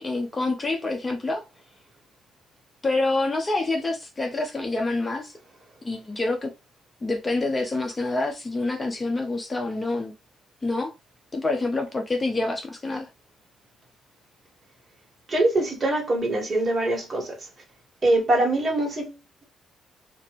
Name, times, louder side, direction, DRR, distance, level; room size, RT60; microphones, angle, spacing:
voice 1, 0.0-1.4 2.8-5.3 5.8-6.5 7.0-10.1 10.6-10.9 11.3-13.1, left 2 dB, 25° left, 0.6 m, -27 dB
voice 2, 15.3-17.5 18.0-19.2, right 2 dB, 35° right, 1.5 m, -23 dB
2.9 x 2.5 x 2.9 m
cardioid pair, 90°, 0 cm